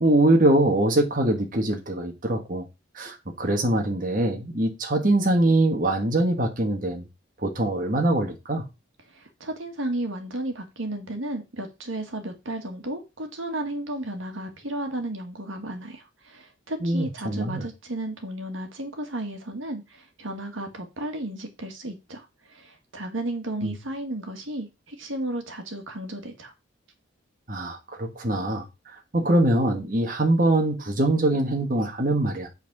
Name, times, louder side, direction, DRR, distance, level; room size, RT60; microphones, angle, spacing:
voice 1, 0.0-2.7 2.9-7.1 7.4-8.6 16.8-17.6 23.6-23.7 27.5-28.7 29.1-32.5, right 1 dB, 45° right, 1.5 m, -23 dB
voice 2, 9.1-26.5, right 1 dB, 80° right, 1.7 m, -33 dB
8.2 x 4.1 x 6.0 m
head